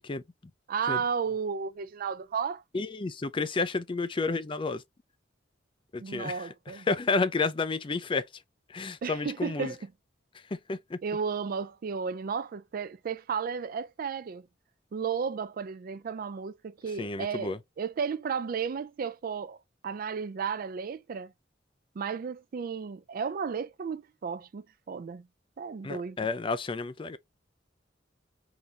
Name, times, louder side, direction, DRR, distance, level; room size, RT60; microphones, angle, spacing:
voice 1, 0.7-2.9 6.0-6.9 9.0-9.9 11.0-14.5 14.9-19.6 19.8-21.3 22.0-25.3 25.6-26.3, right 6 dB, 50° right, 0.4 m, -33 dB
voice 2, 2.7-4.8 5.9-6.5 6.9-8.3 8.7-9.7 10.5-11.0 17.0-17.6 25.8-27.2, left 3 dB, 25° left, 0.4 m, -30 dB
3.9 x 3.3 x 2.8 m
head